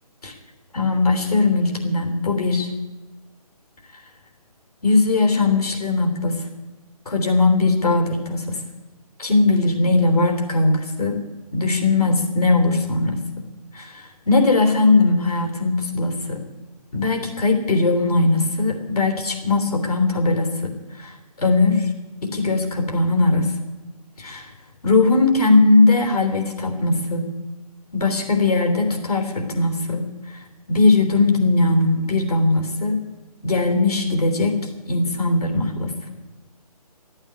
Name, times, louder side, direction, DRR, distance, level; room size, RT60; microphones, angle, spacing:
voice 1, 0.7-2.7 4.8-6.4 7.1-8.6 9.2-11.2 11.5-13.2 13.7-16.4 16.9-20.7 21.0-21.9 22.2-23.5 24.2-24.5 24.8-27.3 27.9-30.0 30.3-30.4 30.7-33.0 33.4-34.6 34.9-35.9, left 3 dB, 70° left, 3 dB, 3.7 m, -19 dB
13.5 x 8.9 x 9.7 m, 1.2 s
figure-of-eight pair, 155°, 20 cm